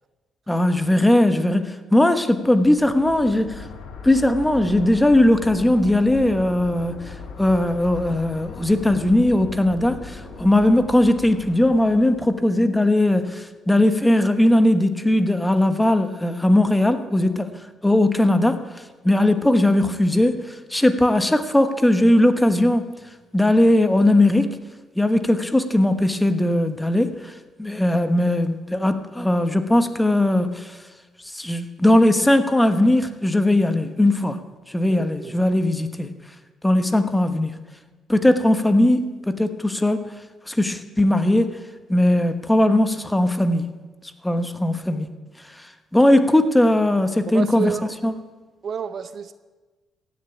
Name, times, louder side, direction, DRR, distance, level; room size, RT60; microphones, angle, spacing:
voice 1, 0.5-3.7 4.0-17.5 17.8-22.9 23.3-24.6 25.0-27.3 27.6-30.8 31.3-34.4 34.7-36.1 36.6-37.5 38.1-40.0 40.5-41.5 41.9-43.7 44.2-45.1 45.9-47.7 48.0-48.1, left 1 dB, 10° left, 9 dB, 1.2 m, -19 dB
sound 1, 2.5-12.4, left 5 dB, 90° left, 3.1 m, -39 dB
voice 2, 34.9-35.4 47.3-47.9 48.6-49.3, right 6 dB, 55° right, 12 dB, 0.7 m, -29 dB
15.5 x 7.2 x 9.1 m, 1.3 s
cardioid pair, 90°, 0 cm